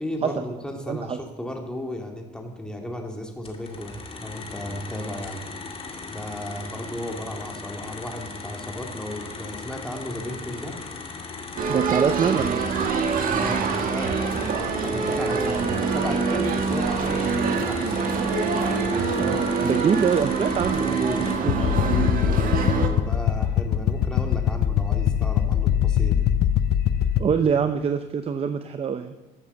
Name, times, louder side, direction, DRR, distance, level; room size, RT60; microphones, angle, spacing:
voice 1, 0.0-4.0 4.2-5.4 6.1-10.8 13.3-18.1 18.7-19.3 20.7-26.2, left 1 dB, 5° left, 2 dB, 2.2 m, -34 dB
voice 2, 0.9-1.2 11.7-12.6 19.2-21.1 21.4-21.7 27.2-29.1, right 6 dB, 35° right, 9 dB, 0.7 m, -24 dB
sound 1, 3.4-21.3, left 4 dB, 35° left, 2.3 m, -38 dB
sound 2, 11.6-22.9, right 5 dB, 55° right, 1.8 m, -25 dB
sound 3, 21.5-27.2, left 10 dB, 75° left, 0.7 m, -22 dB
13.5 x 7.7 x 7.1 m, 1.1 s
cardioid pair, 110°, 17 cm